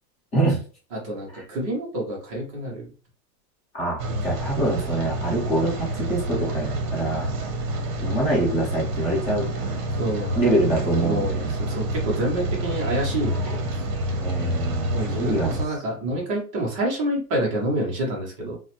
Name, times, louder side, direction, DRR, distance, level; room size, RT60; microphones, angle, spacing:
voice 1, 0.9-2.9 9.9-13.7 14.9-18.6, right 1 dB, 20° right, -2 dB, 0.4 m, -28 dB
voice 2, 3.7-7.3 8.0-9.5 10.3-11.5 14.2-15.5, right 2 dB, 15° left, -5 dB, 0.8 m, -25 dB
Rain, 4.0-15.7, right 1 dB, 55° right, 0.8 m, -28 dB
3.0 x 2.0 x 2.8 m, 0.39 s
supercardioid pair, 160°, 49 cm